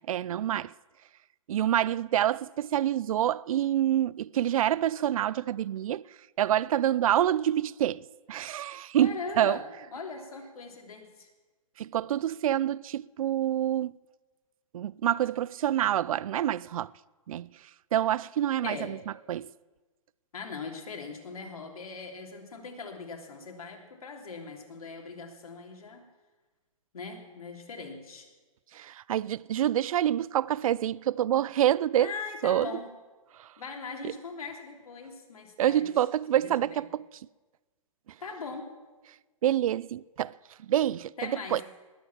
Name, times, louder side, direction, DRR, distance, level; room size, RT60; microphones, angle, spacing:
voice 1, 0.1-0.7 1.5-6.0 6.4-9.6 11.8-14.0 14.7-16.9 17.3-17.5 17.9-19.0 19.3-19.5 28.7-32.1 32.4-32.7 33.4-33.5 34.0-34.1 35.6-37.1 39.4-40.3 40.7-41.6, right 11 dB, 75° right, 0.4 m, -27 dB
voice 2, 9.0-9.6 9.9-11.3 18.6-18.9 20.3-26.0 26.9-28.3 32.0-32.9 33.6-35.9 36.7-36.8 38.2-38.7 41.2-41.6, left 4 dB, 90° left, 3.2 m, -40 dB
20.5 x 8.1 x 7.3 m
hypercardioid pair, 150°, 18 cm